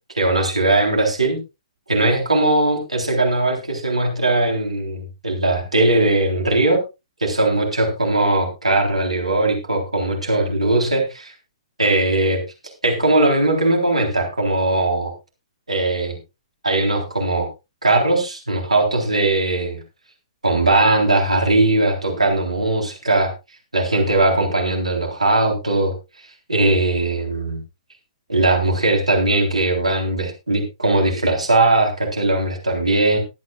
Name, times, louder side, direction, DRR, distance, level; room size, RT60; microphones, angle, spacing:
voice 1, 0.2-1.4 1.9-6.8 7.2-11.3 11.8-12.4 12.8-15.1 15.7-16.2 16.6-17.5 17.8-19.8 20.4-23.3 23.7-25.9 26.5-27.6 28.3-33.2, right 2 dB, 80° right, 2 dB, 3.7 m, -19 dB
22.0 x 8.6 x 2.4 m, 0.26 s
figure-of-eight pair, 120°, 3 cm